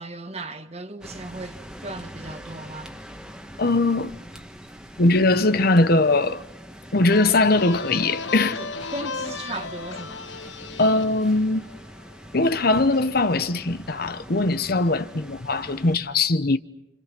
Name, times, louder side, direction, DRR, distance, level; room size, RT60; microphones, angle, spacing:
voice 1, 0.0-2.9 8.6-10.2, right 2 dB, 35° right, 1.4 m, -36 dB
sound 1, 1.0-16.0, equal, 5° right, 1.5 m, -43 dB
voice 2, 3.6-4.1 5.0-6.4 6.9-8.6 10.8-11.7 12.3-16.6, left 2 dB, 55° left, 1.0 m, -21 dB
sound 2, 7.1-12.5, left 4 dB, 90° left, 1.2 m, -35 dB
29.5 x 28.0 x 6.1 m
head